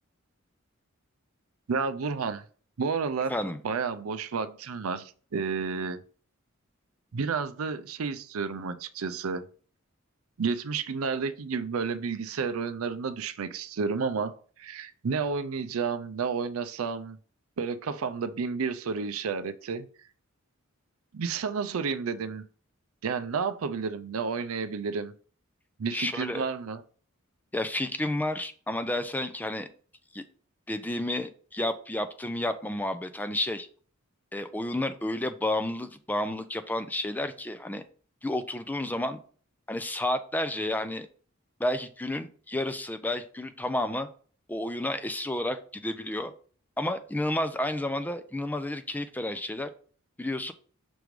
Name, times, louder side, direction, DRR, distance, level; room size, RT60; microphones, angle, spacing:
voice 1, 1.7-2.4 2.8-3.3 3.6-6.0 7.1-9.4 10.4-17.2 17.6-19.9 21.1-22.4 23.0-25.1 25.8-26.8, right 5 dB, 80° right, 0.5 m, -31 dB
voice 2, 25.9-26.4 27.5-29.7 30.1-30.2 30.7-33.7 34.3-37.8 38.2-39.2 39.7-41.1 41.6-44.1 44.5-46.3 46.8-49.7 50.2-50.5, left 1 dB, 10° left, 0.4 m, -31 dB
6.1 x 3.2 x 5.1 m
head